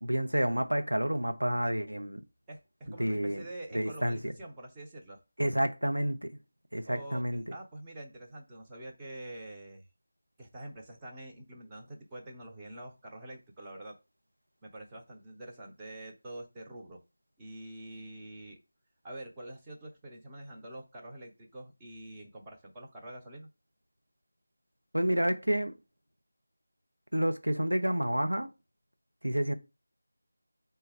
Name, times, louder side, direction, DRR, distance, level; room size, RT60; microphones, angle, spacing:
voice 1, 0.0-2.2 3.0-3.4 3.7-4.3 5.4-6.3 6.7-7.4 24.9-25.7 27.1-28.5 29.2-29.5, equal, 85° right, 0.7 m, -29 dB
voice 2, 2.5-5.2 6.9-9.8 10.4-14.0 14.6-17.0 17.4-18.6 19.0-23.5, right 1 dB, 10° right, 0.7 m, -46 dB
4.1 x 2.2 x 3.4 m
figure-of-eight pair, 165°, 0 cm